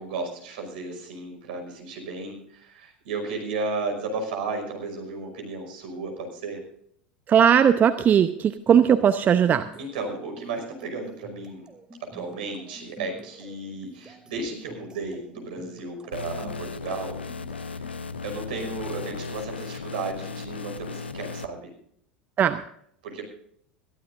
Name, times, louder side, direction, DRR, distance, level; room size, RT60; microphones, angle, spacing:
voice 1, 0.0-6.6 9.8-11.7 12.0-17.2 17.7-17.9 18.2-21.7 23.0-23.2, right 3 dB, 65° right, 3 dB, 5.5 m, -34 dB
voice 2, 7.3-9.7 22.4-22.6, right 8 dB, 30° right, 11 dB, 0.8 m, -18 dB
sound 1, 8.6-18.8, right 3 dB, 15° right, 2.7 m, -49 dB
sound 2, 16.1-21.5, left 4 dB, 85° left, 0.6 m, -36 dB
22.0 x 14.5 x 2.6 m, 0.67 s
figure-of-eight pair, 80°, 6 cm